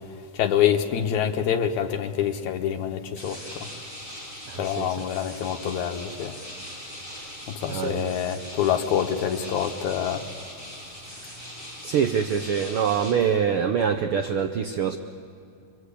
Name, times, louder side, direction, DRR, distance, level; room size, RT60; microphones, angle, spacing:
voice 1, 0.3-3.7 4.6-6.3 7.5-10.2, left 9 dB, 75° left, 2.5 m, -26 dB
sound 1, 3.2-13.1, equal, 5° right, 7.6 m, -41 dB
voice 2, 4.5-5.0 7.1-7.3 7.7-8.1 11.8-15.0, right 7 dB, 75° right, 1.2 m, -25 dB
26.0 x 24.5 x 8.4 m
omnidirectional pair, 3.4 m